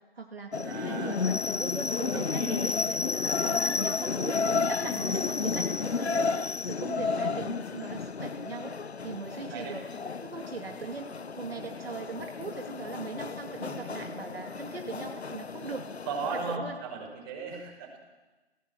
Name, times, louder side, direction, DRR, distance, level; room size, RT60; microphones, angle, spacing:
voice 1, 0.1-9.9 10.2-15.9 16.3-16.8, right 4 dB, 65° right, 3 dB, 2.5 m, -40 dB
sound 1, 0.5-16.6, left 4 dB, 80° left, 0.9 m, -32 dB
voice 2, 0.7-1.2 2.1-2.6 5.0-5.3 9.5-9.7 13.7-14.1 16.1-18.0, right 4 dB, 25° right, 1 dB, 6.0 m, -37 dB
28.5 x 18.5 x 7.8 m, 1.2 s
figure-of-eight pair, 145°, 32 cm